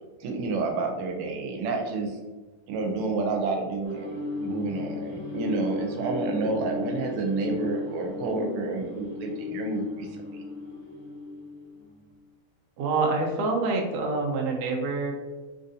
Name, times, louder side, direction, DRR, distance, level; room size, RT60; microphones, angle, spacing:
voice 1, 0.2-2.2 2.7-4.2 4.4-10.4, right 3 dB, 90° right, 2 dB, 1.6 m, -29 dB
sound 1, 3.8-12.1, left 3 dB, 50° left, 1.1 m, -35 dB
voice 2, 12.8-15.1, right 3 dB, 75° right, 1 dB, 0.9 m, -26 dB
4.0 x 2.5 x 2.7 m, 1.3 s
omnidirectional pair, 2.4 m